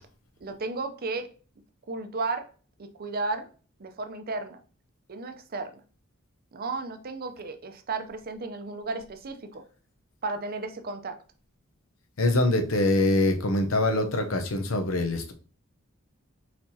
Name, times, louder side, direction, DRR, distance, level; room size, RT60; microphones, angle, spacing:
voice 1, 0.4-1.3 1.9-2.4 2.8-3.5 3.8-4.6 5.1-5.8 6.5-9.6 10.2-11.2, right 3 dB, 45° right, 0.6 m, -33 dB
voice 2, 12.2-15.3, left 2 dB, 70° left, 0.8 m, -24 dB
4.5 x 4.2 x 2.8 m
head